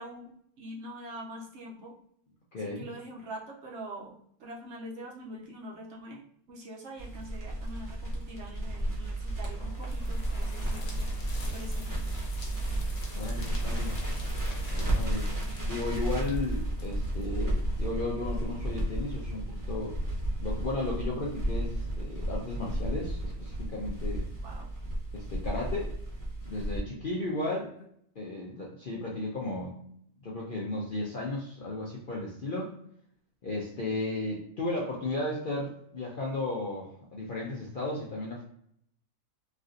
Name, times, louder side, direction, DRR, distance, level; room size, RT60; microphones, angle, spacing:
voice 1, 0.0-2.0 2.6-11.0 11.5-11.9 24.4-24.7 27.6-27.7, right 1 dB, 60° right, -1 dB, 0.8 m, -44 dB
voice 2, 2.5-2.9 13.1-14.0 14.7-15.3 15.6-20.0 20.4-24.2 25.1-25.9 26.4-27.7 28.2-29.8 30.2-32.8 33.4-38.4, left 2 dB, 55° left, -3 dB, 0.6 m, -34 dB
Crackle, 7.0-26.8, right 1 dB, 15° right, 1.0 m, -33 dB
sound 1, 8.9-17.7, left 2 dB, 80° left, 1.3 m, -48 dB
3.2 x 2.6 x 2.5 m, 0.67 s
omnidirectional pair, 1.5 m